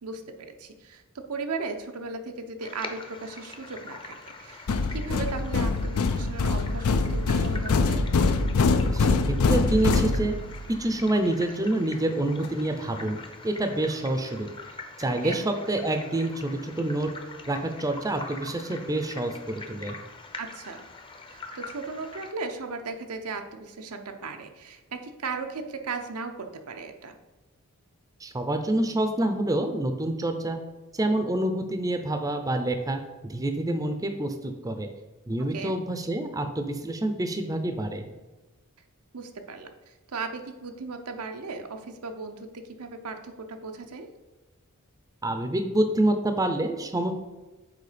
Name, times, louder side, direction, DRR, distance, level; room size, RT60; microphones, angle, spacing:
voice 1, 0.0-8.0 15.2-15.4 20.4-20.9 21.2-27.1 35.5-35.7 39.1-44.1, right 4 dB, 90° right, 5 dB, 0.8 m, -37 dB
sound 1, 2.6-22.3, left 3 dB, 25° left, 0.7 m, -44 dB
sound 2, 4.7-10.7, left 3 dB, 80° left, 0.5 m, -24 dB
voice 2, 8.9-10.4 10.7-14.5 15.0-17.1 17.5-20.0 28.2-30.6 30.9-34.9 35.3-38.1 45.2-47.1, right 1 dB, 15° right, 7 dB, 0.5 m, -27 dB
6.8 x 4.5 x 5.0 m, 1.2 s
head